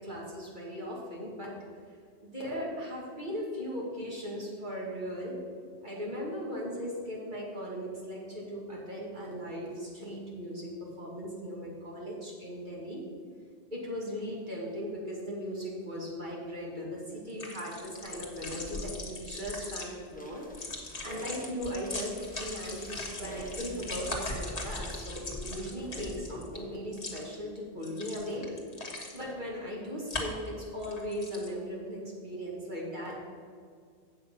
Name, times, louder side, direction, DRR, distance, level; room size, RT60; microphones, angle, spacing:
voice 1, 0.0-1.6 2.2-5.4 5.8-13.1 13.7-28.5 29.1-33.3, equal, 45° right, -4 dB, 2.3 m, -38 dB
sound 1, 17.3-19.8 20.4-26.6 26.9-27.3 27.8-29.2 30.1-30.5 30.8-31.5, left 2 dB, 35° left, 1.5 m, -39 dB
sound 2, 19.7-25.4, left 1 dB, 10° left, 1.1 m, -55 dB
8.7 x 7.1 x 5.5 m, 2.2 s
omnidirectional pair, 1.1 m